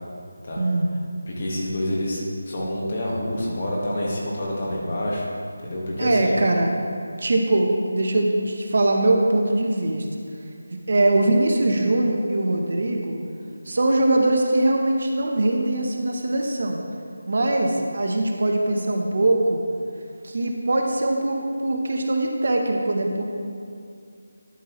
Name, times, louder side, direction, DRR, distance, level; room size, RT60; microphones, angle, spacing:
voice 1, 0.6-0.9 6.0-6.7 7.2-10.1 10.9-13.2 13.7-16.8 17.3-19.6 20.2-23.2, right 2 dB, 55° right, 2 dB, 0.8 m, -22 dB
voice 2, 1.3-5.3 5.6-6.3, left 1 dB, 35° left, -3 dB, 1.5 m, -27 dB
11.5 x 5.4 x 3.0 m, 2.3 s
figure-of-eight pair, 170°, 0 cm